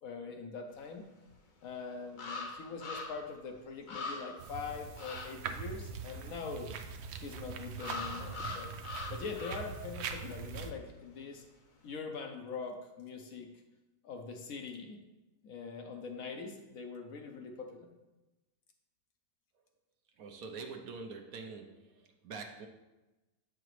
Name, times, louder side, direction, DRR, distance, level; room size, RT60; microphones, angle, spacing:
voice 1, 0.0-1.0 1.6-6.7 7.2-8.7 9.1-11.4 11.8-13.5 14.0-15.0 15.4-17.9, left 5 dB, 65° left, 3 dB, 1.0 m, -43 dB
sound 1, 1.3-1.4 2.2-3.3 3.6-3.7 3.9-4.5 5.0-5.3 7.8-9.8 10.1-10.3, left 3 dB, 50° left, 0.6 m, -42 dB
sound 2, 4.4-10.7, right 6 dB, 85° right, 0.5 m, -42 dB
voice 2, 20.2-22.7, right 4 dB, 65° right, 4 dB, 1.0 m, -45 dB
8.0 x 4.9 x 3.1 m, 1.1 s
omnidirectional pair, 1.7 m